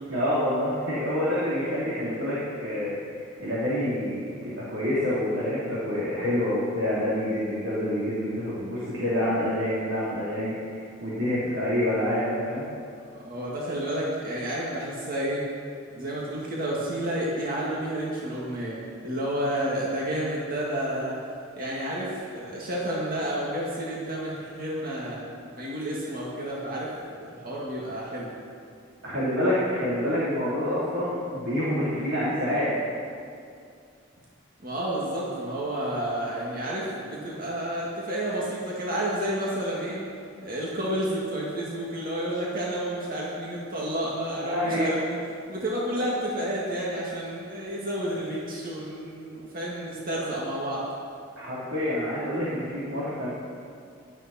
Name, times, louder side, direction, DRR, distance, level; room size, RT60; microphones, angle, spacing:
voice 1, 0.1-12.6 29.0-32.7 44.4-45.0 51.4-53.3, left 1 dB, 75° right, -10 dB, 3.5 m, -27 dB
voice 2, 13.2-15.4 15.9-21.2 21.6-25.3 25.6-28.3 34.6-40.0 40.4-45.2 45.5-50.8, right 1 dB, 45° right, -5 dB, 2.1 m, -30 dB
18.0 x 12.5 x 4.4 m, 2.4 s
head